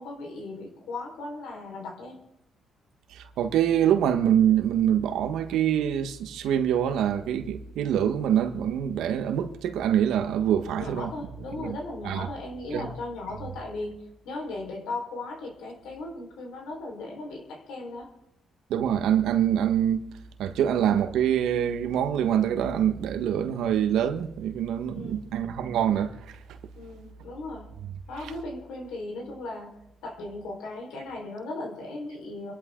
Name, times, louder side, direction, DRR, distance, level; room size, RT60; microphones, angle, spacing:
voice 1, 0.0-2.2 10.8-18.1 24.9-25.3 26.7-27.7 28.1-29.7 30.0-32.5, left 2 dB, 90° left, 4.5 m, -37 dB
voice 2, 3.1-11.1 11.6-11.8 12.0-12.3 12.7-12.9 18.7-20.0 20.4-26.1, right 9 dB, 85° right, 1.3 m, -25 dB
28.0 x 11.5 x 3.8 m
cardioid pair, 90°, 0 cm